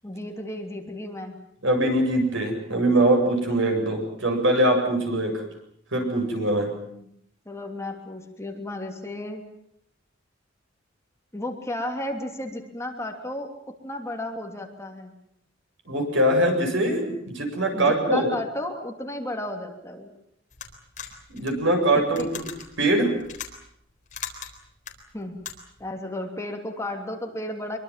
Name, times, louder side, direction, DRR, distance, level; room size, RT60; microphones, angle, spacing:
voice 1, 0.0-1.4 6.6-7.1 7.4-9.4 11.3-13.5 13.8-15.1 17.7-20.1 21.9-22.3 25.1-25.4 25.8-27.8, left 1 dB, 15° left, 3 dB, 3.0 m, -33 dB
voice 2, 1.6-5.4 5.9-6.7 15.9-18.3 21.3-22.4 22.8-23.1, right 1 dB, 65° right, 4 dB, 7.6 m, -22 dB
sound 1, 20.5-25.8, left 7 dB, 40° left, 3.9 m, -40 dB
25.5 x 23.0 x 7.5 m, 0.73 s
head